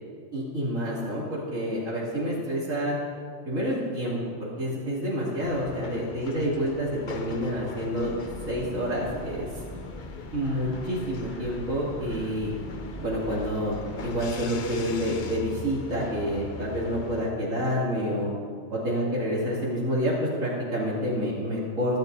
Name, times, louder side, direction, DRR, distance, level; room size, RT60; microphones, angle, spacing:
voice 1, 0.3-3.0 3.5-8.2 8.5-9.5 10.3-12.5 13.0-13.8 14.0-18.3 18.7-22.0, equal, 90° right, -8 dB, 3.1 m, -28 dB
sound 1, 5.4-17.3, left 5 dB, 50° left, 0.7 m, -41 dB
sound 2, 7.9-14.3, equal, 10° left, 1.2 m, -43 dB
21.5 x 12.0 x 2.7 m, 2.1 s
omnidirectional pair, 1.3 m